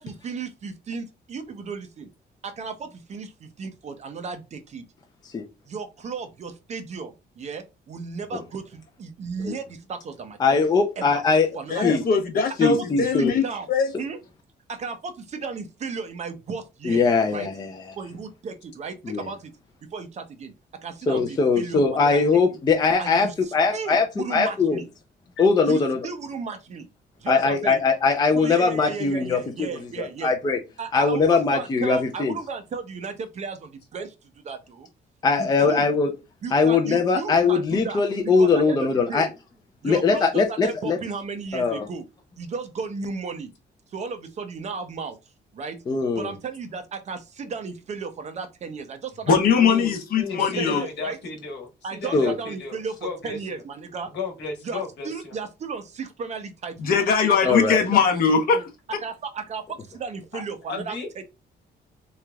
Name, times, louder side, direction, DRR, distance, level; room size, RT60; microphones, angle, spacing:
voice 1, 0.0-2.1 2.4-4.8 5.7-10.6 11.0-11.2 11.5-11.9 12.6-13.7 14.0-14.2 14.7-17.0 17.3-17.5 18.0-19.5 19.8-22.2 23.0-24.9 25.6-26.9 27.2-27.8 28.3-30.3 30.8-34.1 34.4-34.9 35.4-35.9 36.4-39.3 39.8-42.1 42.4-43.5 43.9-45.2 45.5-45.8 46.1-49.9 50.4-51.2 51.8-54.1 54.6-56.9 57.4-57.6 57.8-58.2 58.5-58.6 59.0-61.2, right 5 dB, 40° right, 0.6 m, -34 dB
voice 2, 10.4-11.5 11.8-12.0 12.6-13.3 16.8-17.8 19.0-19.2 21.1-24.8 25.4-26.0 27.3-29.7 30.0-30.6 30.9-32.4 35.2-36.1 36.5-39.3 39.8-41.0 41.5-41.8 45.9-46.3 52.1-52.4 57.4-57.9, left 4 dB, 20° left, 0.4 m, -21 dB
voice 3, 11.7-13.4 13.7-13.9 49.3-50.8 56.8-58.6, left 6 dB, 55° left, 0.9 m, -21 dB
voice 4, 49.6-53.6 54.1-55.3 60.3-60.4 60.7-61.1, left 4 dB, 70° left, 1.3 m, -34 dB
3.8 x 3.1 x 2.2 m
cardioid pair, 180°, 18 cm